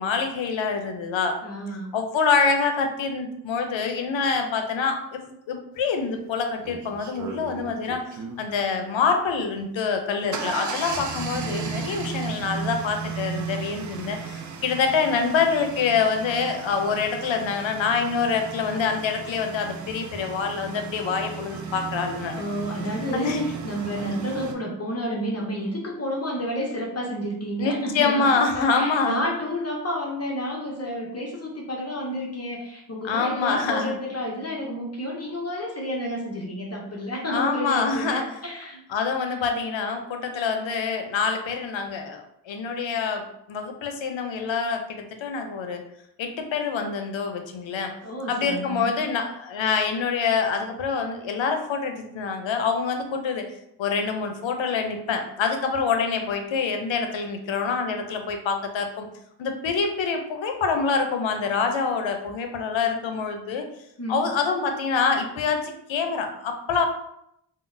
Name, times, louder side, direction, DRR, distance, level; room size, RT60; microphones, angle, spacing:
voice 1, 0.0-1.4 1.9-22.4 23.1-23.5 27.6-29.2 33.0-34.0 37.3-38.3 38.9-45.8 46.2-47.9 48.3-53.5 53.8-59.1 59.4-63.7 64.1-66.9, left 5 dB, 90° left, 5 dB, 0.5 m, -26 dB
voice 2, 1.4-1.9 22.4-38.8 39.3-39.4 48.0-48.9 64.0-64.2, equal, 35° left, -2 dB, 0.6 m, -30 dB
sound 1, 5.9-6.0 6.6-8.5 9.9-24.5, right 5 dB, 45° right, 0.4 m, -35 dB
3.7 x 2.0 x 2.5 m, 0.78 s
wide cardioid pair, 75°, 44 cm